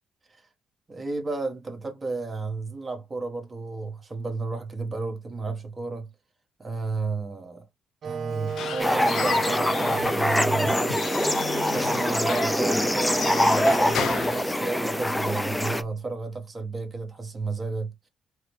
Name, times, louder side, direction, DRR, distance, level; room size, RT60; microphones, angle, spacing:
voice 1, 0.9-6.1 6.6-7.7 8.0-11.0 11.7-17.9, right 3 dB, 30° right, 1.1 m, -32 dB
Wind instrument woodwind instrument, 8.0-16.0, right 5 dB, 55° right, 0.3 m, -35 dB
Squeak / Wood, 8.3-15.2, left 7 dB, 70° left, 0.6 m, -34 dB
sound 1, 8.8-15.8, left 1 dB, 10° left, 0.5 m, -24 dB
4.6 x 2.1 x 3.1 m
cardioid pair, 90°, 0 cm